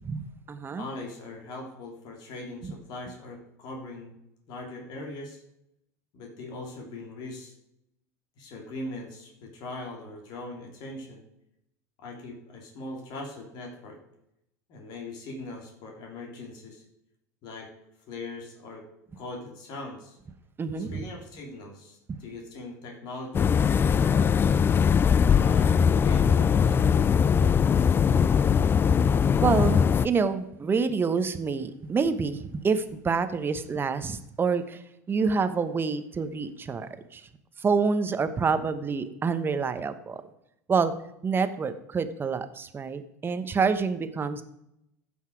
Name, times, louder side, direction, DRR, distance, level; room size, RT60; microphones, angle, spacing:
voice 1, 0.0-0.8 2.6-2.7 20.6-21.0 22.1-22.2 29.4-37.3 37.6-40.2 40.7-40.9 41.2-44.4, right 5 dB, 25° right, 11 dB, 1.1 m, -27 dB
voice 2, 0.8-4.2 4.5-5.4 6.1-7.5 8.4-11.2 12.0-14.0 14.7-16.8 17.4-17.7 18.1-18.9 19.2-20.2 20.8-24.3 25.2-27.1, left 2 dB, 55° left, 1 dB, 3.0 m, -40 dB
sound 1, 23.3-30.1, left 7 dB, 25° left, 0.3 m, -21 dB
15.0 x 5.6 x 4.7 m, 0.81 s
hypercardioid pair, 80°, 9 cm